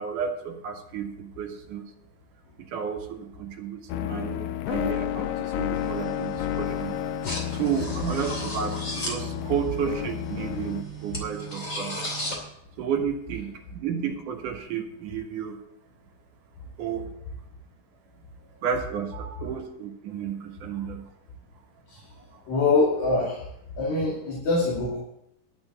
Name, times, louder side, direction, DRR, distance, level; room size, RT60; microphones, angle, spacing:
voice 1, 0.0-1.9 2.6-7.1 7.5-12.0 12.8-15.6 16.8-17.1 18.6-21.0 22.3-22.4, right 7 dB, 70° right, 3 dB, 2.9 m, -32 dB
sound 1, 3.9-10.8, left 14 dB, 80° left, 2.2 m, -31 dB
sound 2, 5.7-12.4, right 1 dB, 25° left, 2.5 m, -36 dB
voice 2, 22.5-23.4 23.8-25.0, left 3 dB, 55° left, -5 dB, 3.7 m, -24 dB
11.5 x 6.2 x 8.5 m, 0.79 s
omnidirectional pair, 3.9 m